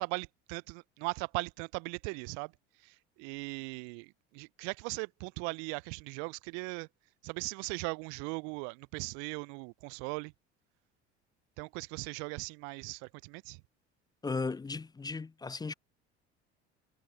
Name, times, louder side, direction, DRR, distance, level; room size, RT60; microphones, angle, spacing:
voice 1, 0.0-2.5 2.8-6.9 7.2-10.3 11.6-13.6, right 35 dB, 60° right, 0.5 m, -39 dB
voice 2, 14.2-15.7, left 4 dB, 10° left, 0.5 m, -36 dB
hypercardioid pair, 70°, 34 cm